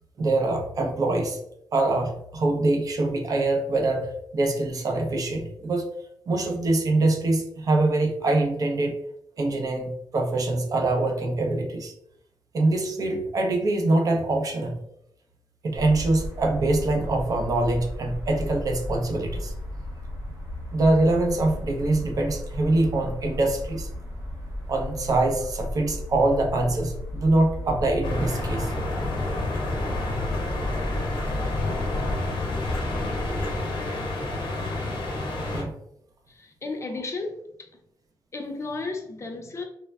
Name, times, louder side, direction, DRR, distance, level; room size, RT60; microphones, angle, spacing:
voice 1, 0.2-1.4 1.7-5.9 6.3-8.9 9.4-11.9 12.5-14.7 15.6-19.5 20.7-23.9 24.7-28.7 35.5-35.7, right 2 dB, 45° right, 3 dB, 0.5 m, -24 dB
sound 1, 15.7-33.6, left 1 dB, 75° right, 0.8 m, -34 dB
sound 2, 28.0-35.6, left 2 dB, 85° left, 0.6 m, -29 dB
voice 2, 36.3-37.7 38.3-39.6, left 3 dB, 35° left, 3 dB, 0.5 m, -34 dB
3.2 x 2.1 x 2.2 m, 0.77 s
wide cardioid pair, 125°, 8 cm